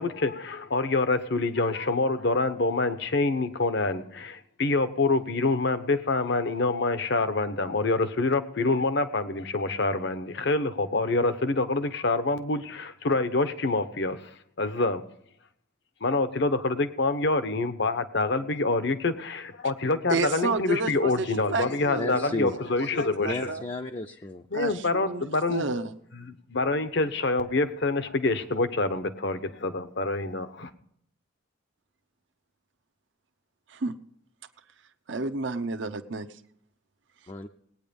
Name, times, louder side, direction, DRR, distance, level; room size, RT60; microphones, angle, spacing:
voice 1, 0.0-14.3 14.6-15.0 16.0-23.5 24.5-25.7 26.2-30.7, left 3 dB, 60° left, 1.0 m, -26 dB
voice 2, 20.1-22.6 23.2-23.6 24.5-25.9 33.7-33.9 35.1-36.3, right 3 dB, 65° right, 0.8 m, -31 dB
voice 3, 21.9-22.5 23.2-24.5 37.3-37.5, left 2 dB, 25° left, 0.6 m, -33 dB
18.5 x 9.4 x 5.3 m
head